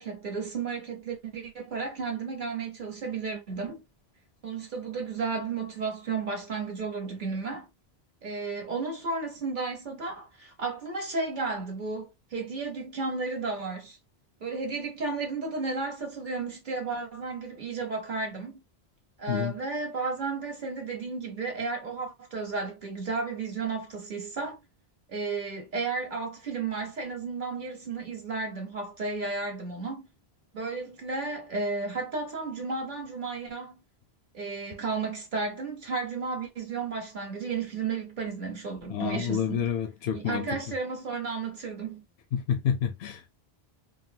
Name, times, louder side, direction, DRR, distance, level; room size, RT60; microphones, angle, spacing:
voice 1, 0.0-3.8 4.4-7.7 8.2-14.0 14.4-18.6 19.2-24.6 25.1-30.1 30.5-33.7 34.3-39.7 40.1-42.0, right 4 dB, 50° right, 1.2 m, -33 dB
voice 2, 38.9-40.5 42.3-43.4, left 8 dB, 75° left, 0.8 m, -29 dB
3.6 x 2.0 x 2.7 m
omnidirectional pair, 1.1 m